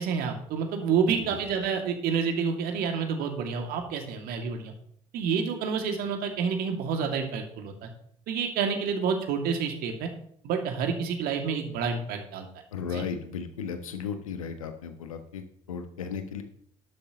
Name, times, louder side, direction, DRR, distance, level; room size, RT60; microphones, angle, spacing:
voice 1, 0.0-4.7 5.1-7.9 8.3-10.1 10.4-12.5 12.9-13.0, right 6 dB, 60° right, 4 dB, 2.4 m, -29 dB
voice 2, 12.7-16.4, left 6 dB, 75° left, 8 dB, 1.3 m, -35 dB
12.0 x 12.0 x 3.0 m, 0.66 s
figure-of-eight pair, 50°, 18 cm